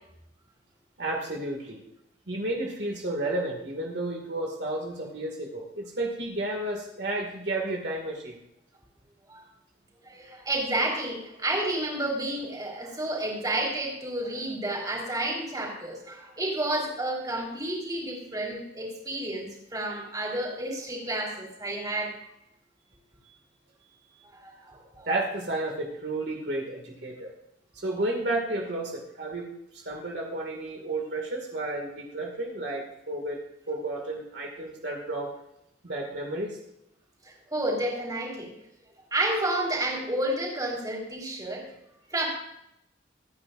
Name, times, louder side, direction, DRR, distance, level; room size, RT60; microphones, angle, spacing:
voice 1, 1.0-1.8 2.3-8.4 23.2-23.3 25.1-27.3 27.7-33.4 33.7-35.3 35.8-36.6, right 2 dB, 70° right, 0 dB, 2.2 m, -32 dB
voice 2, 10.0-22.1 24.2-25.1 37.2-38.5 39.1-41.6 42.1-42.3, right 1 dB, 20° right, -2 dB, 4.3 m, -30 dB
25.5 x 9.8 x 2.6 m, 0.81 s
head